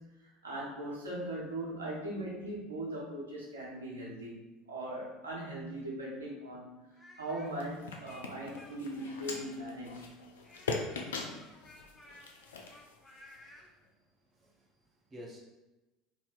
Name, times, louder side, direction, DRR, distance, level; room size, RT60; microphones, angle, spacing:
voice 1, 0.0-6.8 7.2-10.1, right 1 dB, 85° right, -5 dB, 0.8 m, -40 dB
Speech, 6.9-9.8 10.4-13.7, left 1 dB, 20° left, 0.5 m, -56 dB
sound 1, 7.5-13.5, left 4 dB, 75° left, 0.3 m, -41 dB
voice 2, 13.7-14.0 14.3-15.4, equal, 30° right, -1 dB, 0.8 m, -52 dB
2.7 x 2.1 x 3.8 m, 1.0 s
figure-of-eight pair, 70°, 0 cm